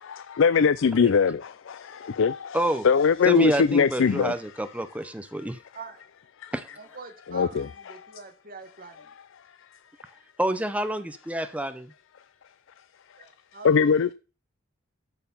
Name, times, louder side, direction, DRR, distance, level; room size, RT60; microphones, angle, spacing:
voice 1, 0.0-4.3 6.4-6.5 7.3-7.7 13.6-14.1, left 6 dB, 70° left, 0.4 m, -22 dB
voice 2, 2.5-2.9 3.2-5.6 6.5-6.7 10.4-11.9, right 1 dB, 5° right, 0.7 m, -28 dB
voice 3, 6.8-9.1 13.2-13.9, right 4 dB, 45° right, 1.8 m, -44 dB
14.0 x 4.7 x 5.4 m
head